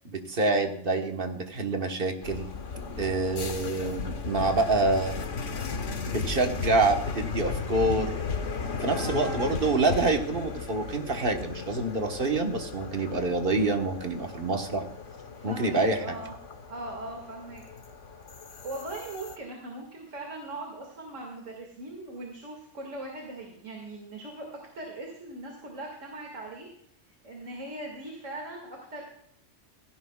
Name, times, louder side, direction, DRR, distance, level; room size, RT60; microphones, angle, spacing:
voice 1, 0.0-2.5 3.0-5.1 6.1-8.2 8.8-14.9 15.4-16.1, right 2 dB, 45° right, 4 dB, 1.5 m, -27 dB
sound 1, 2.2-19.4, left 5 dB, 75° left, 1.5 m, -36 dB
voice 2, 8.9-9.6 15.4-16.3 16.7-17.6 18.6-24.5 24.7-26.7 27.2-29.0, right 2 dB, 85° right, 0 dB, 2.6 m, -39 dB
16.5 x 16.0 x 2.4 m, 0.73 s
omnidirectional pair, 1.3 m